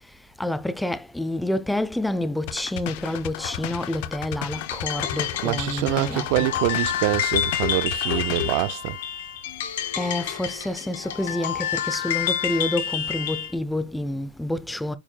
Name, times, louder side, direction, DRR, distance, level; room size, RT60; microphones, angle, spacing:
voice 1, 0.4-6.5 10.0-15.0, left 1 dB, 5° left, 0.7 m, -28 dB
sound 1, 2.5-8.7, left 12 dB, 55° left, 0.7 m, -33 dB
sound 2, 4.5-13.6, left 9 dB, 80° left, 2.1 m, -29 dB
voice 2, 5.4-9.0, right 20 dB, 50° right, 0.5 m, -25 dB
8.8 x 4.7 x 2.3 m
supercardioid pair, 145°, 0 cm